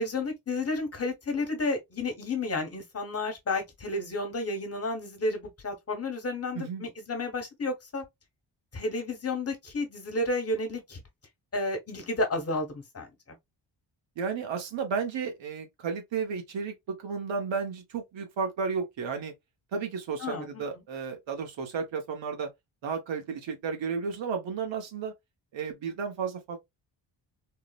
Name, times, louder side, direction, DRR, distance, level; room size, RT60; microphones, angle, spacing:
voice 1, 0.0-8.0 8.7-11.0 11.5-13.1 20.2-20.6, left 2 dB, 35° left, 1.1 m, -31 dB
voice 2, 14.2-19.3 19.7-22.5 22.8-25.1 25.5-26.6, right 5 dB, 85° right, 0.9 m, -33 dB
3.6 x 2.0 x 2.3 m
wide cardioid pair, 115°, 44 cm